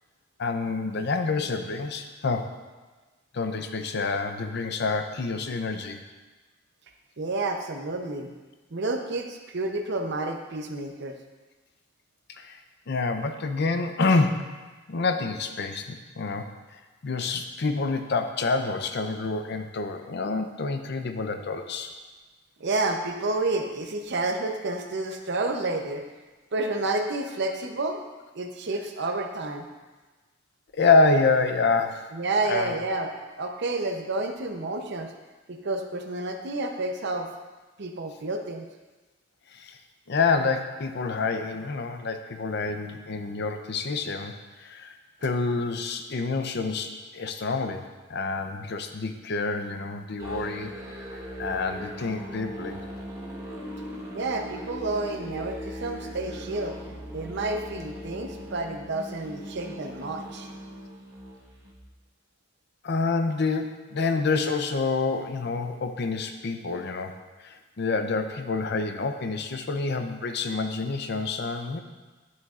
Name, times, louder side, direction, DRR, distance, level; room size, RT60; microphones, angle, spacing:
voice 1, 0.4-2.5 3.3-6.0 12.4-12.6 12.9-14.6 14.9-16.5 17.0-21.9 30.7-32.1 32.5-32.7 39.5-39.8 40.1-44.3 44.6-44.9 45.2-50.7 51.1-52.8 62.8-67.1 67.4-71.8, left 3 dB, 60° left, 7 dB, 0.6 m, -27 dB
voice 2, 7.2-8.3 8.7-11.2 22.6-26.0 26.5-28.0 28.3-29.7 32.1-33.1 33.4-35.1 35.5-37.3 37.8-38.7 54.1-56.7 57.1-60.5, right 2 dB, 60° right, 4 dB, 0.7 m, -30 dB
Musical instrument, 50.2-61.8, equal, 15° right, 1.3 m, -39 dB
10.5 x 6.3 x 2.4 m, 1.3 s
head